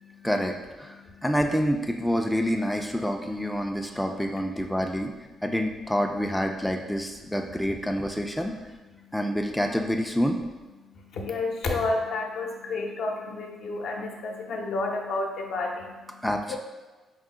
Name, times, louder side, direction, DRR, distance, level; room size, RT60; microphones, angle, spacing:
voice 1, 0.2-5.1 5.4-8.5 9.1-10.4 16.2-16.6, equal, 5° left, 3 dB, 0.3 m, -27 dB
voice 2, 10.8-16.6, left 3 dB, 70° left, 1 dB, 0.6 m, -31 dB
4.6 x 2.0 x 3.7 m, 1.2 s
cardioid pair, 90°, 0 cm